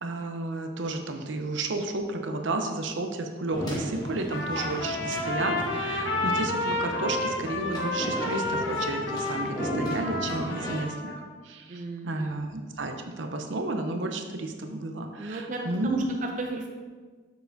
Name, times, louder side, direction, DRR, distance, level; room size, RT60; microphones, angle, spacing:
voice 1, 0.0-16.1, right 2 dB, 75° right, 5 dB, 0.6 m, -32 dB
sound 1, 3.5-10.8, right 1 dB, 20° left, 1.1 m, -36 dB
Trumpet, 4.3-11.2, left 2 dB, 75° left, 1.1 m, -31 dB
voice 2, 11.7-12.4 15.2-16.7, right 3 dB, 40° right, 2 dB, 0.4 m, -35 dB
6.8 x 6.3 x 2.7 m, 1.5 s
head